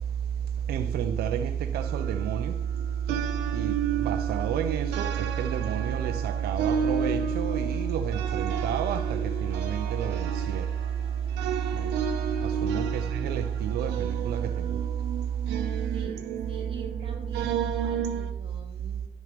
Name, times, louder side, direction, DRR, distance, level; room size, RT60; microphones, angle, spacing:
voice 1, 0.7-2.6 3.5-10.7 11.7-11.9 12.4-14.8, right 8 dB, 70° right, 0.6 m, -29 dB
sound 1, 1.8-18.3, right 6 dB, 90° right, 1.0 m, -33 dB
sound 2, 3.9-14.1, left 4 dB, 25° left, 1.1 m, -51 dB
voice 2, 12.7-13.1 15.9-19.1, right 3 dB, 30° right, 2.5 m, -45 dB
11.0 x 6.3 x 5.2 m
cardioid pair, 110°, 17 cm